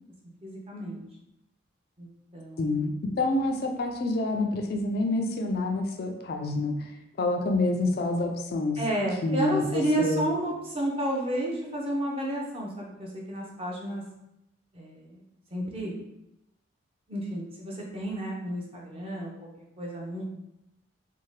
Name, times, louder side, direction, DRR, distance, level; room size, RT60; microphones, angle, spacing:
voice 1, 0.4-1.0 2.0-2.9 8.8-14.0 14.7-15.2 15.5-15.9 17.1-20.2, right 1 dB, 30° right, -2 dB, 0.5 m, -31 dB
voice 2, 2.6-6.9 7.2-8.8 9.2-10.2, left 2 dB, 50° left, 2 dB, 0.3 m, -27 dB
2.7 x 2.1 x 3.1 m, 0.86 s
head